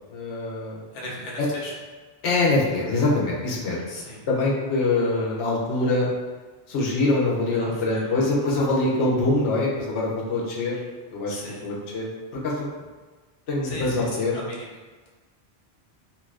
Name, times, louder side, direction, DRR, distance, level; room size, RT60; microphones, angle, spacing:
voice 1, 0.1-0.8 1.4-1.5 2.2-3.8 4.3-6.1 6.7-10.8 11.1-11.3 11.6-12.1 12.4-12.7 13.5-14.4, left 2 dB, 75° left, -4 dB, 0.9 m, -24 dB
voice 2, 0.9-1.8 3.9-4.2 7.5-8.1 11.3-11.7 13.6-14.7, left 1 dB, 45° left, -3 dB, 0.6 m, -37 dB
2.6 x 2.4 x 3.2 m, 1.3 s
omnidirectional pair, 1.1 m